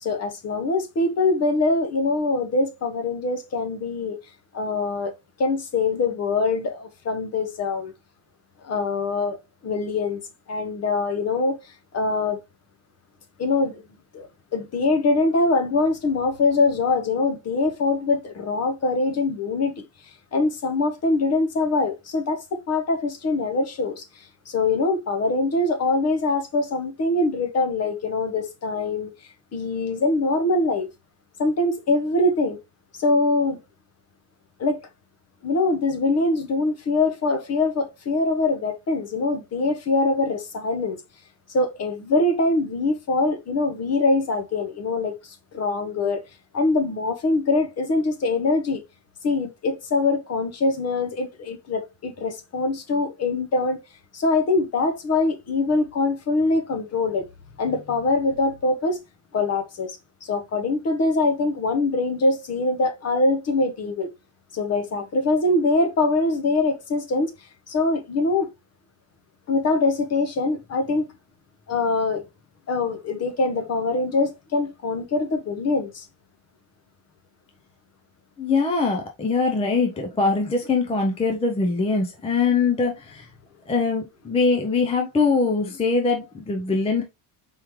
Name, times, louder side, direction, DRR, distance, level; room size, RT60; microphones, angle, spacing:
voice 1, 0.0-4.2 4.5-5.1 5.4-7.9 8.6-10.2 10.5-12.4 13.4-13.8 14.1-14.3 14.5-19.8 20.3-24.0 24.5-29.1 29.5-30.9 31.4-32.6 33.0-33.6 34.6-34.8 35.4-41.0 41.5-46.2 46.5-48.8 49.2-53.8 54.1-57.3 57.6-59.0 59.3-64.1 64.5-67.3 67.7-68.5 69.5-71.1 71.7-72.2 72.7-76.1, left 3 dB, 30° left, 0.8 m, -23 dB
voice 2, 78.4-83.3 83.7-87.0, left 4 dB, 15° left, 0.4 m, -22 dB
4.6 x 3.6 x 3.0 m
cardioid pair, 175°, 49 cm